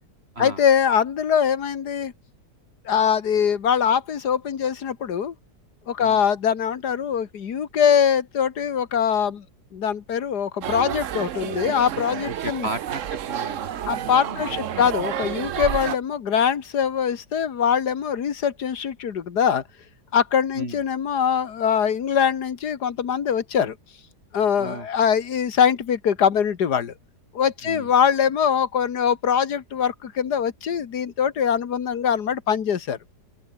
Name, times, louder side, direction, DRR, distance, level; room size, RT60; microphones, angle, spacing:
voice 1, 0.4-2.1 2.9-5.3 5.9-9.4 9.7-12.7 13.9-19.6 20.1-23.8 24.3-26.9 27.3-33.0, left 8 dB, 70° left, 2.1 m, -22 dB
sound 1, 10.6-16.0, right 10 dB, 55° right, 1.0 m, -30 dB
voice 2, 12.2-14.9 15.8-15.9 20.5-20.8 24.6-25.1 27.6-27.9, right 2 dB, 35° right, 4.3 m, -36 dB
open air
omnidirectional pair, 1.8 m